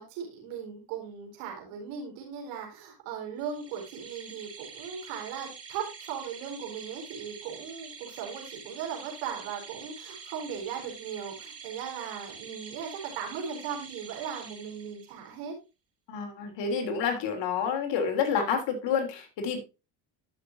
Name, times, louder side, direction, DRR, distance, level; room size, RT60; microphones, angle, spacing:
voice 1, 0.0-15.6, right 7 dB, 85° right, 2 dB, 4.5 m, -38 dB
sound 1, 3.4-15.3, right 5 dB, 30° right, 3.9 m, -46 dB
voice 2, 16.1-19.6, left 6 dB, 65° left, 4 dB, 3.3 m, -29 dB
13.0 x 6.4 x 2.7 m, 0.27 s
supercardioid pair, 95°, 47 cm